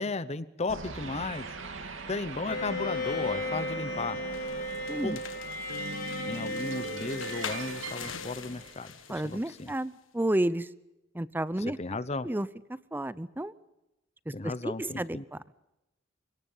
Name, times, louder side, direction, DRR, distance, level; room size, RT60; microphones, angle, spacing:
voice 1, 0.0-1.5 2.1-4.2 5.0-5.2 6.3-9.7 11.7-12.3 14.3-15.2, left 3 dB, 35° left, 15 dB, 0.8 m, -35 dB
sound 1, 0.7-9.2, right 2 dB, 85° right, 2.5 m, -42 dB
Bowed string instrument, 2.5-8.5, left 1 dB, 55° left, 5.3 m, -36 dB
sound 2, 4.3-9.8, left 8 dB, 90° left, 1.4 m, -44 dB
voice 2, 9.1-10.7 11.1-11.8 12.2-12.5 12.9-13.5 14.3-15.4, right 1 dB, 10° right, 17 dB, 0.7 m, -31 dB
29.5 x 17.5 x 5.6 m, 0.94 s
head